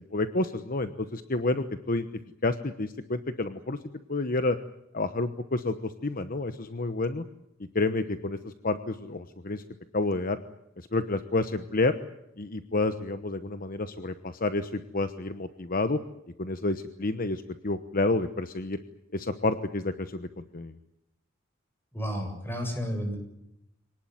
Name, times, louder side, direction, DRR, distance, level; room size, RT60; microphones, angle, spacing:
voice 1, 0.1-2.1 2.4-3.8 4.1-4.6 4.9-7.2 7.7-9.6 9.9-10.4 10.8-11.9 12.4-16.0 16.4-18.8 19.1-20.7, left 2 dB, 45° left, 10 dB, 1.1 m, -29 dB
voice 2, 21.9-23.2, equal, 10° left, 3 dB, 7.5 m, -31 dB
25.0 x 19.0 x 9.3 m, 0.83 s
head